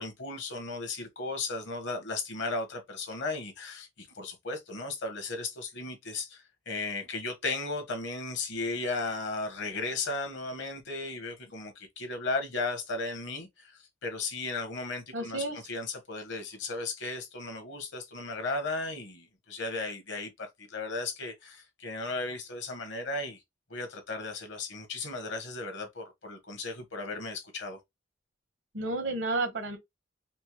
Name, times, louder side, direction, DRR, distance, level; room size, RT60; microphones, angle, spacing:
voice 1, 0.0-23.4 23.7-27.8, left 3 dB, 65° left, 1.1 m, -35 dB
voice 2, 15.1-15.6 28.7-29.8, right 2 dB, 70° right, 1.1 m, -31 dB
4.4 x 2.0 x 2.9 m
head